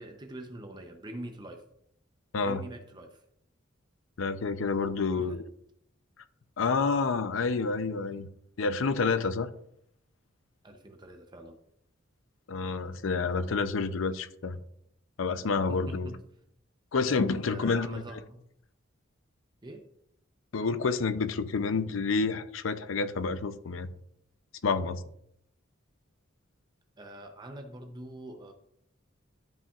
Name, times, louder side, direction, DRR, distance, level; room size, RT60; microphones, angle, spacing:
voice 1, 0.0-1.6 2.4-3.2 5.1-5.4 10.6-11.6 15.7-16.2 17.4-18.4 19.6-19.8 27.0-28.5, right 1 dB, 20° right, 0.6 m, -44 dB
voice 2, 2.3-2.6 4.2-5.5 6.6-8.3 8.6-9.5 12.5-14.6 15.2-16.1 16.9-18.0 20.5-23.9 24.6-25.0, left 4 dB, 80° left, 0.5 m, -29 dB
12.0 x 5.8 x 2.4 m
head